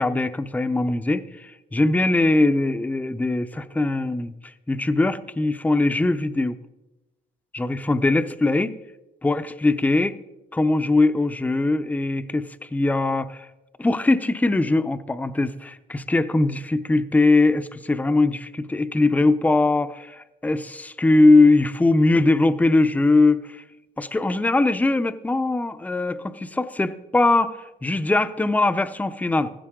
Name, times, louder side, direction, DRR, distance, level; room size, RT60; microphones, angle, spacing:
voice 1, 0.0-4.3 4.7-6.6 7.5-8.7 9.2-10.1 10.5-13.5 13.8-23.6 24.0-29.5, left 2 dB, 10° left, 11 dB, 0.6 m, -21 dB
15.5 x 15.0 x 3.7 m, 1.0 s
cardioid pair, 110°, 17 cm